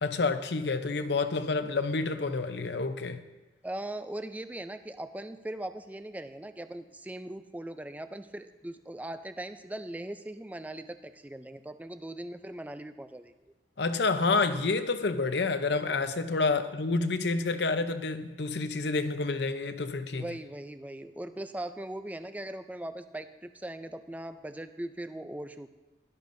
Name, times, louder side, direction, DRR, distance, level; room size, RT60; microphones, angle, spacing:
voice 1, 0.0-3.2 13.8-20.3, left 3 dB, 70° left, 0.7 m, -29 dB
voice 2, 3.6-13.3 16.5-16.7 20.1-25.7, right 1 dB, 10° right, 0.4 m, -40 dB
17.0 x 12.0 x 2.6 m
head